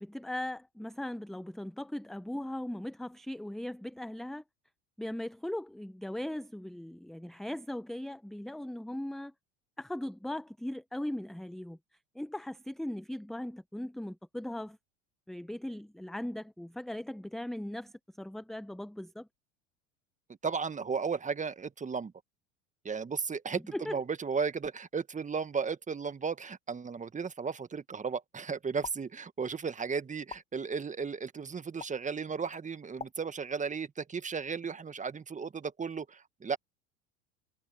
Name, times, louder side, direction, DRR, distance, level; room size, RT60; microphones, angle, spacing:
voice 1, 0.0-4.4 5.0-9.3 9.8-11.8 12.1-14.8 15.3-19.3 23.7-24.0, left 1 dB, ahead, 0.7 m, -39 dB
voice 2, 20.4-22.1 22.9-36.6, right 5 dB, 20° right, 1.7 m, -35 dB
sound 1, 28.8-29.0 30.3-30.4 31.8-31.9 33.0-33.1, left 5 dB, 20° left, 1.4 m, -41 dB
hypercardioid pair, 80°, 36 cm